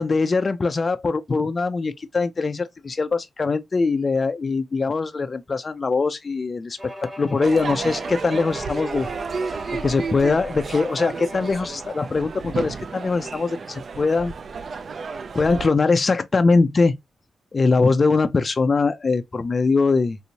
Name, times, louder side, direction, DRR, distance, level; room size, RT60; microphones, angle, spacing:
voice 1, 0.0-9.1 9.4-9.5 9.8-14.3 15.4-17.0 17.5-20.2, left 4 dB, 30° left, 0.3 m, -22 dB
Bowed string instrument, 6.8-12.1, equal, 10° right, 1.2 m, -39 dB
Crowd / Fireworks, 7.4-15.7, right 5 dB, 45° right, 0.4 m, -32 dB
3.4 x 2.8 x 2.7 m
wide cardioid pair, 140°, 0 cm